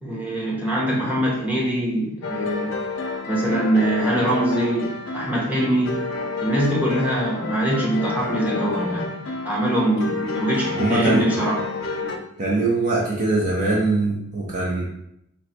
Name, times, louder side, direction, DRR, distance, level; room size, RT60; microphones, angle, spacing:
voice 1, 0.0-2.7 3.3-6.0 6.4-11.6 12.0-12.2, right 1 dB, 10° right, -6 dB, 1.0 m, -23 dB
sound 1, 2.2-12.2, left 3 dB, 65° left, 0.5 m, -30 dB
voice 2, 10.8-11.2 12.4-14.8, right 2 dB, 40° right, -4 dB, 0.6 m, -22 dB
3.9 x 2.2 x 4.2 m, 0.79 s
head